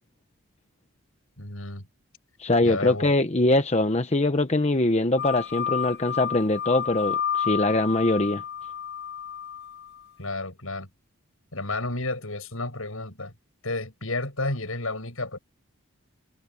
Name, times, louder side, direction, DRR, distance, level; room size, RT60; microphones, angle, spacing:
voice 1, 1.4-1.9 2.6-3.1 10.2-10.9 11.5-13.3 13.6-15.4, left 2 dB, 75° left, 7.6 m, -31 dB
voice 2, 2.4-8.4, left 2 dB, 30° left, 0.9 m, -23 dB
sound 1, 5.2-10.0, left 8 dB, 55° left, 5.6 m, -31 dB
head